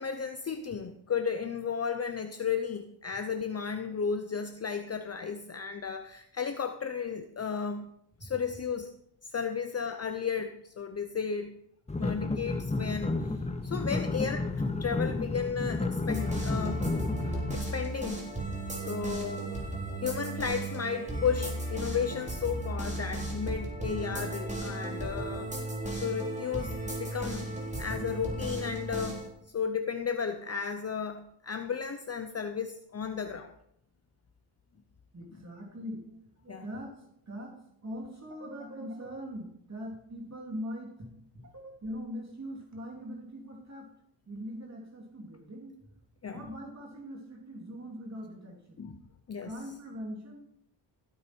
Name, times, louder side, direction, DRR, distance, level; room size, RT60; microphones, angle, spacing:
voice 1, 0.0-7.8 8.2-8.9 9.2-11.6 12.0-13.2 13.6-14.5 14.8-16.9 17.5-18.3 18.7-19.5 20.0-25.5 25.9-29.2 29.5-33.5 36.5-36.6 46.2-46.4 48.8-49.0 49.3-49.5, left 6 dB, 35° left, 8 dB, 0.8 m, -34 dB
sound 1, 11.9-17.6, left 2 dB, 15° left, 1.1 m, -31 dB
sound 2, 16.1-29.3, right 1 dB, 15° right, 3.7 m, -35 dB
voice 2, 35.1-36.9 37.3-41.2 41.5-43.9 44.3-45.7 46.3-48.8 49.4-50.4, equal, 40° right, -1 dB, 3.3 m, -42 dB
15.5 x 8.9 x 4.6 m, 0.76 s
cardioid pair, 100°, 43 cm